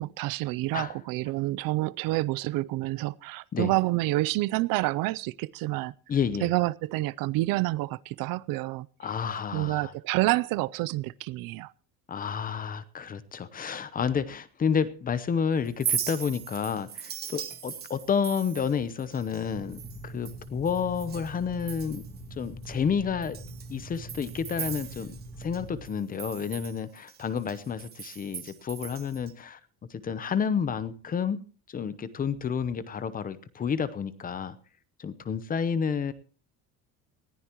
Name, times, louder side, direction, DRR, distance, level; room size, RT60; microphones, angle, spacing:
voice 1, 0.0-5.9 6.4-8.9 9.5-11.7, right 19 dB, 65° right, 0.6 m, -28 dB
voice 2, 6.1-6.5 9.0-9.9 12.1-22.0 22.4-23.4 23.7-29.6 29.9-31.4 31.7-34.6 35.0-36.1, left 6 dB, 25° left, 0.8 m, -30 dB
Chink clink, 15.7-21.3 21.6-22.2 22.6-22.7 23.2-25.6 25.8-29.3, right 8 dB, 25° right, 1.2 m, -38 dB
sound 1, 19.4-25.8, right 2 dB, 5° right, 2.7 m, -43 dB
20.0 x 14.5 x 3.0 m
cardioid pair, 175°, 36 cm